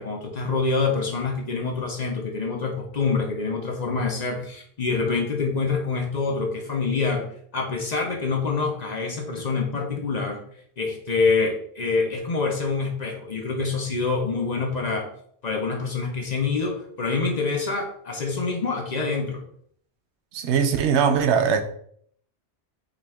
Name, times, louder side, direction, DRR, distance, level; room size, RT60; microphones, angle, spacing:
voice 1, 0.0-10.4 10.8-15.1 15.4-19.4, left 4 dB, 45° left, 0.6 m, -26 dB
voice 2, 20.3-21.6, right 7 dB, 90° right, 0.9 m, -20 dB
5.4 x 2.4 x 3.4 m
omnidirectional pair, 1.1 m